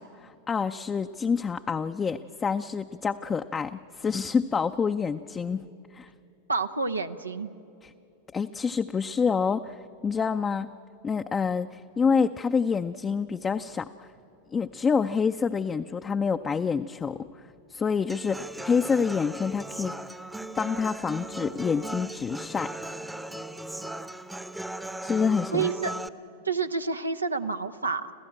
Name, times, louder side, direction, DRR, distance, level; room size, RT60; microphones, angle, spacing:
voice 1, 0.0-5.6 5.9-6.1 7.8-7.9 8.3-10.7 11.0-14.1 14.5-17.3 17.7-19.9 20.6-22.7 25.0-25.7, left 5 dB, 20° left, 6 dB, 0.5 m, -27 dB
voice 2, 6.5-7.5 25.5-26.0 26.4-28.1, right 4 dB, 90° right, 8 dB, 0.8 m, -28 dB
Human voice / Acoustic guitar, 18.1-26.1, right 1 dB, 5° right, 0.8 m, -37 dB
27.0 x 15.0 x 8.8 m, 2.7 s
figure-of-eight pair, 95°, 0 cm